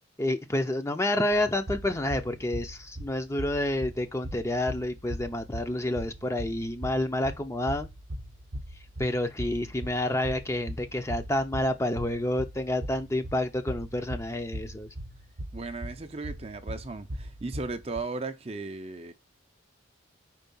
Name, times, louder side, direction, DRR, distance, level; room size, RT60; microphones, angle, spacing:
voice 1, 0.2-7.9 9.0-14.9, left 1 dB, 15° left, 0.5 m, -29 dB
sound 1, 1.3-18.0, equal, 55° right, 0.9 m, -40 dB
voice 2, 15.5-19.1, right 3 dB, 30° right, 0.5 m, -36 dB
4.8 x 4.6 x 5.4 m
head